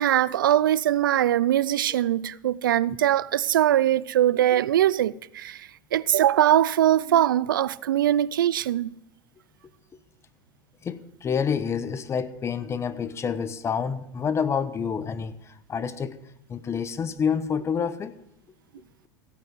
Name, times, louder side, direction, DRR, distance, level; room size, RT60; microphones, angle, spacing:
voice 1, 0.0-8.9, right 12 dB, 85° right, 0.5 m, -22 dB
voice 2, 10.8-16.2 16.5-18.1, left 6 dB, 25° left, 1.0 m, -28 dB
16.0 x 9.1 x 6.1 m
hypercardioid pair, 100°, 11 cm